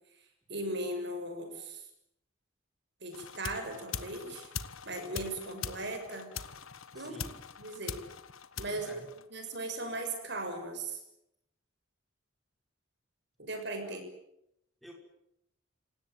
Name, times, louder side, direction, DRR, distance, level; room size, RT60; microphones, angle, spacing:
voice 1, 0.5-1.8 3.0-4.5 4.8-6.3 6.9-7.2 7.6-8.0 8.6-9.0 9.3-11.0 13.5-14.1, right 2 dB, 55° right, 6 dB, 6.4 m, -37 dB
sound 1, 3.1-9.7, left 6 dB, 85° left, 1.4 m, -43 dB
voice 2, 6.9-7.4 8.6-9.1 13.8-14.0 14.8-14.9, equal, ahead, 1 dB, 5.6 m, -51 dB
27.0 x 18.0 x 9.4 m, 0.78 s
head